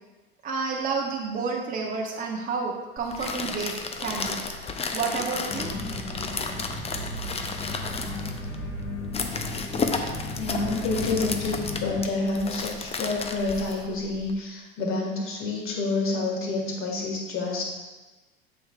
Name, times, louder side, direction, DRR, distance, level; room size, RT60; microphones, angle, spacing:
voice 1, 0.4-4.4 4.9-5.7, right 4 dB, 30° right, -1 dB, 0.9 m, -30 dB
sound 1, 3.0-14.3, left 4 dB, 20° left, 0.6 m, -33 dB
sound 2, 5.5-12.0, left 1 dB, 80° left, 2.3 m, -35 dB
voice 2, 10.4-17.6, left 3 dB, 45° left, 0 dB, 2.0 m, -28 dB
7.7 x 6.3 x 2.5 m, 1.2 s
hypercardioid pair, 90°, 29 cm